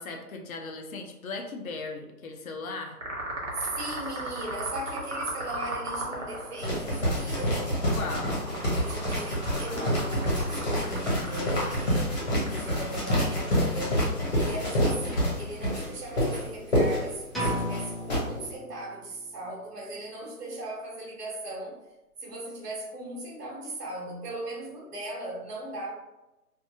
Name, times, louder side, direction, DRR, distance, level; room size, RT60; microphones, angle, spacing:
voice 1, 0.0-3.0 7.9-8.4, left 3 dB, 65° left, 3 dB, 0.5 m, -37 dB
sound 1, 3.0-16.3, right 2 dB, 55° right, 0.8 m, -38 dB
voice 2, 3.5-7.8 8.7-14.1 14.4-21.8 22.2-25.9, right 1 dB, 80° right, -2 dB, 1.0 m, -38 dB
sound 2, 6.6-18.2, equal, 45° left, 1.0 m, -27 dB
sound 3, 17.3-19.2, equal, ahead, 0.4 m, -34 dB
2.6 x 2.2 x 2.6 m, 1.0 s
hypercardioid pair, 175°, 46 cm